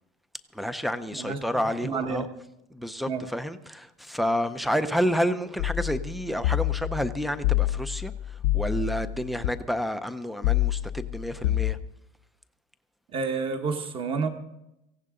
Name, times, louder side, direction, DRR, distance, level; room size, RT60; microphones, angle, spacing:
voice 1, 0.5-2.3 2.7-11.8, equal, ahead, 0.5 m, -29 dB
voice 2, 1.8-2.3 3.1-3.2 13.1-14.3, right 5 dB, 25° right, 1.3 m, -29 dB
sound 1, 5.6-9.5 10.4-11.7, left 14 dB, 90° left, 0.7 m, -27 dB
17.5 x 16.0 x 3.7 m
cardioid pair, 175°, 20 cm